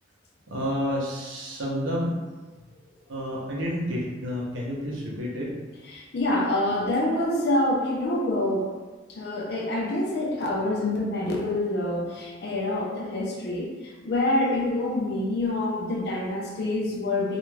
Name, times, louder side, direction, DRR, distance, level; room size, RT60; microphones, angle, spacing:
voice 1, 0.5-2.2 3.1-5.6, equal, 85° right, -3 dB, 0.6 m, -30 dB
voice 2, 5.9-8.7 9.1-17.4, left 1 dB, 55° left, -2 dB, 0.4 m, -26 dB
2.4 x 2.2 x 3.1 m, 1.3 s
head